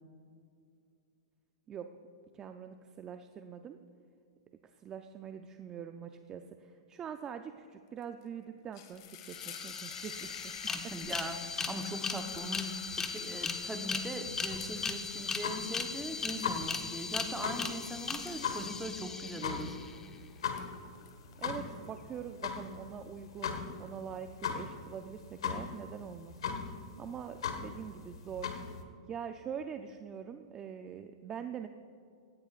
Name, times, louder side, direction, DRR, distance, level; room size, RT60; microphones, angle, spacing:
voice 1, 2.3-3.8 4.6-10.5 21.4-26.6 27.0-28.5 29.1-31.7, right 8 dB, 25° right, 7 dB, 0.5 m, -44 dB
sound 1, 8.0-8.2 8.5-20.1 20.4-22.4, left 10 dB, 55° left, 1.6 m, -52 dB
sound 2, 9.0-9.1 9.2-20.1, left 5 dB, 15° left, 1.0 m, -38 dB
voice 2, 10.7-11.4 11.7-19.8, right 1 dB, 10° right, 5 dB, 1.0 m, -40 dB
sound 3, 14.5-28.8, left 6 dB, 80° left, 1.4 m, -40 dB
17.5 x 14.5 x 2.5 m, 2.4 s
hypercardioid pair, 135°, 3 cm